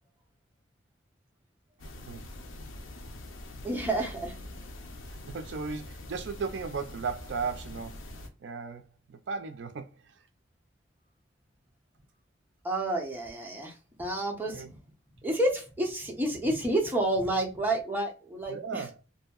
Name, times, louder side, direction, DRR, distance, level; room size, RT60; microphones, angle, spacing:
sound 1, 1.8-8.3, left 1 dB, 85° left, 0.6 m, -44 dB
voice 1, 3.6-4.4 12.6-14.8 15.2-18.8, right 1 dB, 10° right, 0.6 m, -30 dB
voice 2, 5.3-8.0 8.4-10.2 14.5-14.7 18.5-19.0, right 5 dB, 65° right, 0.4 m, -36 dB
2.7 x 2.6 x 2.3 m
head